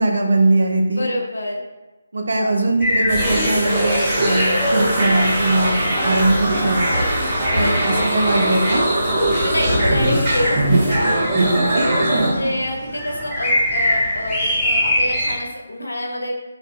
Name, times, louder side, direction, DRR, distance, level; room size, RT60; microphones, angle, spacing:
voice 1, 0.0-1.1 2.1-7.0 7.5-7.8 8.0-8.9 11.7-12.5, right 2 dB, 60° right, 2 dB, 0.4 m, -20 dB
voice 2, 0.9-1.6 7.5-7.9 9.4-11.4 12.0-16.3, left 1 dB, 70° left, 0 dB, 0.5 m, -27 dB
sound 1, 2.8-15.3, left 1 dB, ahead, 0.5 m, -26 dB
sound 2, 3.1-12.3, right 1 dB, 20° right, 0.8 m, -20 dB
Thunder, 4.9-13.5 13.9-14.1 14.4-14.5 14.7-14.8, left 1 dB, 20° left, 1.3 m, -31 dB
2.4 x 2.2 x 2.5 m, 1.1 s
figure-of-eight pair, 150°, 0 cm